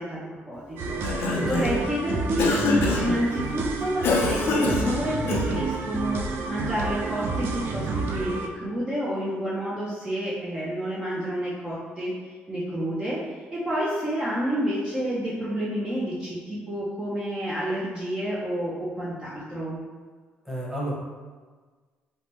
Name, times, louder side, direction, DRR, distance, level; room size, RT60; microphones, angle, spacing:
voice 1, 0.0-12.2 12.5-13.2 13.5-19.8, equal, 25° right, -7 dB, 0.6 m, -29 dB
Cough, 0.8-1.9 2.4-3.2 4.0-5.7, left 3 dB, 80° left, 0.4 m, -25 dB
sound 1, 0.8-8.5, right 3 dB, 70° right, 0.3 m, -30 dB
voice 2, 1.3-1.8 20.4-20.9, right 1 dB, 5° right, -7 dB, 1.0 m, -32 dB
3.2 x 2.1 x 2.8 m, 1.4 s
cardioid pair, 80°, 4 cm